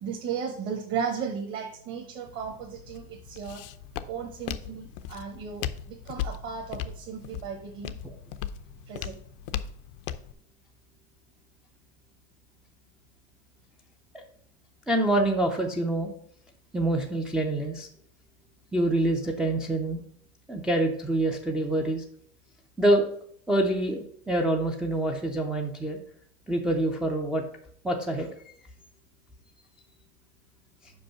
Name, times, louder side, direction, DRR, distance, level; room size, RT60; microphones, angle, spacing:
voice 1, 0.0-3.6 4.0-7.9 8.9-9.2, right 6 dB, 40° right, 1 dB, 1.1 m, -35 dB
Walk footsteps, 2.3-10.3, left 10 dB, 60° left, 0.6 m, -38 dB
voice 2, 14.9-16.1 16.7-17.9 18.7-20.0 20.5-22.0 22.8-23.1 23.5-26.0 26.5-27.4 27.8-28.3, right 1 dB, ahead, 0 dB, 0.4 m, -26 dB
5.3 x 5.3 x 5.6 m, 0.65 s
supercardioid pair, 150°, 31 cm